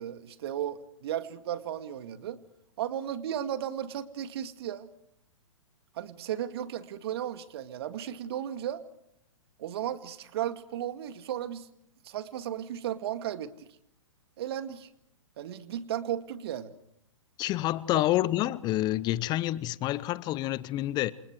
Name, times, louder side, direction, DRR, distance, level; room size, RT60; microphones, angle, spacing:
voice 1, 0.0-2.4 2.8-4.9 5.9-8.8 9.6-11.7 12.0-13.7 14.4-14.9 15.4-16.7 17.9-18.0, right 10 dB, 50° right, 2.0 m, -35 dB
voice 2, 17.4-21.1, left 15 dB, 25° left, 0.8 m, -28 dB
28.5 x 28.0 x 4.8 m
figure-of-eight pair, 120°, 17 cm